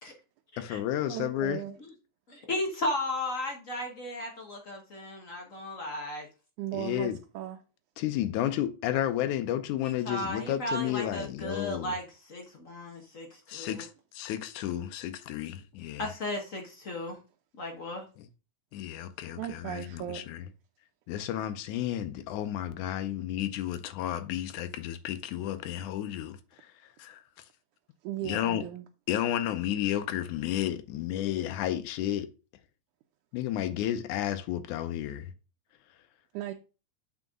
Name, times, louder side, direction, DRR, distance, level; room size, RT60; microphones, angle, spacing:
voice 1, 0.6-1.6 6.7-7.2 8.0-12.0 13.5-16.1 18.2-18.3 18.7-20.4 21.1-27.2 28.2-28.6 29.1-32.3 33.3-35.3, left 12 dB, 90° left, 2.2 m, -32 dB
voice 2, 1.1-1.8 6.6-7.6 19.4-20.3 28.0-28.9 36.3-36.5, right 12 dB, 85° right, 2.1 m, -36 dB
voice 3, 2.3-6.3 9.8-13.8 16.0-17.2 17.6-18.0, left 1 dB, 55° left, 0.8 m, -35 dB
7.8 x 4.6 x 3.6 m
omnidirectional pair, 3.4 m